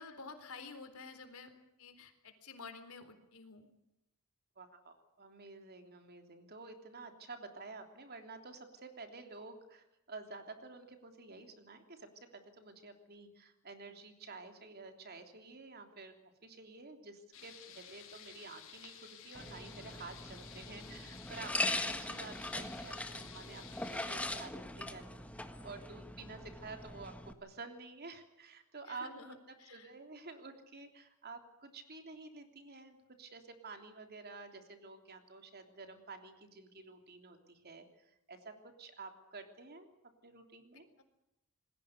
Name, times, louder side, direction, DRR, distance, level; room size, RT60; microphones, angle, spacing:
voice 1, 0.0-1.5 1.8-3.7 28.9-29.9 40.7-41.0, left 4 dB, 80° left, 8 dB, 3.9 m, -51 dB
voice 2, 4.6-16.1 16.4-23.6 23.9-25.0 25.3-37.9 38.3-39.9 40.2-40.9, right 3 dB, 45° right, 5 dB, 3.3 m, -50 dB
sound 1, 17.3-24.5, left 8 dB, 65° left, 4.6 m, -54 dB
sound 2, 19.3-27.3, left 1 dB, 5° left, 1.5 m, -41 dB
27.5 x 20.5 x 6.7 m, 0.86 s
head